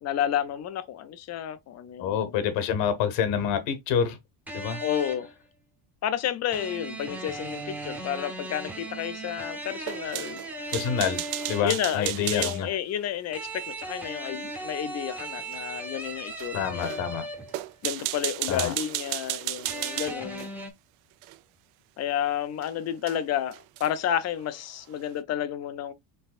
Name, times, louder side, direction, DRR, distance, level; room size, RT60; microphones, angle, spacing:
voice 1, 0.0-2.4 4.8-5.3 6.0-10.4 11.6-17.0 17.8-20.5 22.0-25.9, left 10 dB, 35° left, 0.5 m, -31 dB
voice 2, 2.0-4.2 4.5-4.8 10.7-11.2 11.5-12.7 16.5-17.2 18.5-18.7, left 8 dB, 65° left, 1.2 m, -27 dB
sound 1, 4.5-5.4 6.5-11.9 13.3-17.7 19.7-20.7, right 2 dB, 5° right, 0.7 m, -37 dB
sound 2, 9.8-12.6 15.5-15.6 16.4-16.5 16.8-17.0 17.5-20.5 21.2-21.4 22.6-22.7 23.1-23.2 23.5-24.0, right 17 dB, 65° right, 0.5 m, -33 dB
5.5 x 3.4 x 2.3 m
cardioid pair, 160°, 48 cm